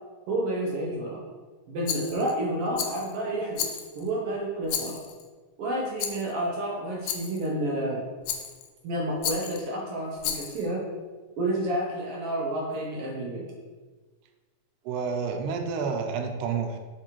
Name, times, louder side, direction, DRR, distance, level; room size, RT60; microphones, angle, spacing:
voice 1, 0.3-1.2 1.7-5.0 5.6-8.0 8.8-10.9 11.4-13.5, right 1 dB, 70° right, -3 dB, 1.5 m, -30 dB
Rattle, 1.9-2.4 2.8-3.1 3.6-4.1 4.7-5.2 6.0-6.3 7.1-7.5 8.3-8.7 9.2-9.6 10.2-10.7, left 8 dB, 85° left, 2.1 m, -33 dB
voice 2, 14.9-16.8, right 5 dB, 85° right, 4 dB, 2.2 m, -29 dB
7.4 x 4.6 x 3.0 m, 1.3 s
omnidirectional pair, 3.6 m